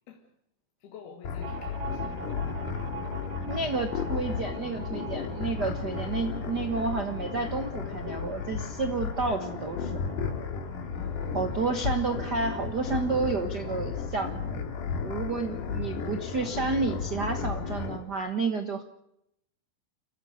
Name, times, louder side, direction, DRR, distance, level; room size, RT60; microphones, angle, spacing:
voice 1, 0.8-2.1 3.5-3.7 11.0-11.6 15.3-16.0, left 7 dB, 80° left, 1 dB, 4.0 m, -49 dB
sound 1, 1.2-18.0, left 6 dB, 60° left, 3.4 m, -34 dB
sound 2, 1.4-14.5 14.8-14.9 15.2-16.0, right 6 dB, 55° right, 2.4 m, -46 dB
voice 2, 3.5-9.9 11.3-14.6 15.0-18.8, right 4 dB, 80° right, 7 dB, 0.9 m, -30 dB
29.5 x 15.5 x 6.6 m, 0.80 s
omnidirectional pair, 4.4 m